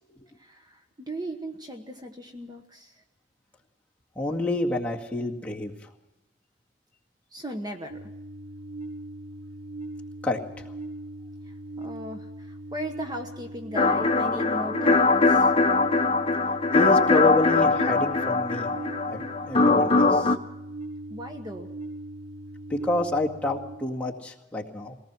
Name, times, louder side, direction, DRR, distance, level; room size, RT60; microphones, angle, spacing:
voice 1, 0.4-3.0 7.3-8.1 11.4-15.6 21.1-21.7, equal, 25° right, 5 dB, 1.2 m, -37 dB
voice 2, 4.2-5.7 10.2-10.7 16.7-18.7 19.1-20.3 22.7-25.0, left 2 dB, 10° left, -2 dB, 1.9 m, -28 dB
sound 1, 7.9-23.8, right 1 dB, 40° right, 6.0 m, -39 dB
sound 2, 13.7-20.4, left 3 dB, 35° left, 0.9 m, -21 dB
23.0 x 18.5 x 6.1 m, 0.95 s
head